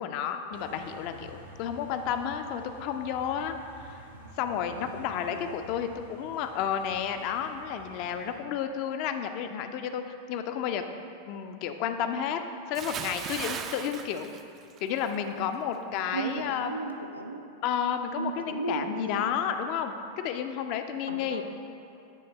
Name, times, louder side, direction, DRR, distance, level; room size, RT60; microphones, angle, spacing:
voice 1, 0.0-4.1 4.4-10.0 10.3-10.8 11.3-12.4 12.7-14.3 14.8-16.7 17.6-19.9 20.2-21.4, left 8 dB, 45° left, 7 dB, 0.4 m, -31 dB
sound 1, 0.5-8.4, right 1 dB, 70° right, 0.9 m, -50 dB
Bathtub (filling or washing) / Splash splatter, 12.7-15.2 15.5-15.8, right 7 dB, 30° right, 0.3 m, -37 dB
voice 2, 16.1-17.5 18.2-19.3 21.1-21.4, right 3 dB, 90° right, 3 dB, 0.5 m, -35 dB
9.1 x 3.2 x 4.3 m, 2.6 s
figure-of-eight pair, 90°, 0 cm